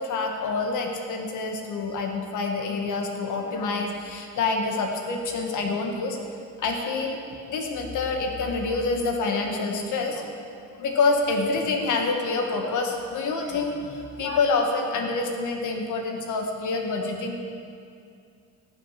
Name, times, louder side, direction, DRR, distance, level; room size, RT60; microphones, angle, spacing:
voice 1, 0.0-6.2 6.6-7.2 7.5-17.4, left 3 dB, 80° left, 2 dB, 1.9 m, -27 dB
18.5 x 6.6 x 5.9 m, 2.4 s
cardioid pair, 90°, 30 cm